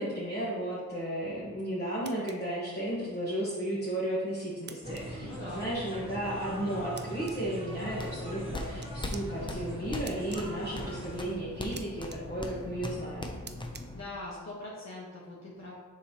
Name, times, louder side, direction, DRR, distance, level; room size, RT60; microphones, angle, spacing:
voice 1, 0.0-13.4, right 1 dB, 30° left, -7 dB, 1.3 m, -34 dB
sound 1, 2.1-2.4 4.7-5.1 7.0-7.4 8.8-9.2 10.1-10.4 11.7-11.9 12.1-12.2 13.5-13.8, right 5 dB, 35° right, 0.4 m, -45 dB
sound 2, 4.8-11.3, right 1 dB, 15° right, 1.1 m, -41 dB
voice 2, 5.2-5.7 13.9-15.8, left 2 dB, 55° left, -6 dB, 1.2 m, -42 dB
sound 3, 7.8-14.0, left 1 dB, 15° left, 0.5 m, -40 dB
7.0 x 5.1 x 2.9 m, 1.5 s
wide cardioid pair, 130°, 32 cm